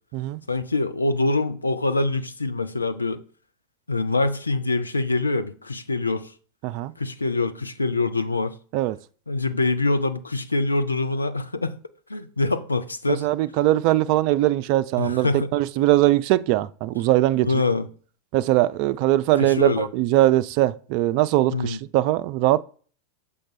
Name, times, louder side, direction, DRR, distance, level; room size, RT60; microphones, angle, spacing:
voice 1, 0.5-3.2 3.9-6.3 7.0-8.5 9.3-11.8 12.1-13.3 15.0-15.5 17.4-17.9 19.4-19.9 21.5-21.8, left 2 dB, 80° left, 0.5 m, -24 dB
voice 2, 13.2-17.6 18.3-22.6, right 15 dB, 45° right, 0.3 m, -21 dB
6.5 x 3.5 x 4.2 m
figure-of-eight pair, 90°, 0 cm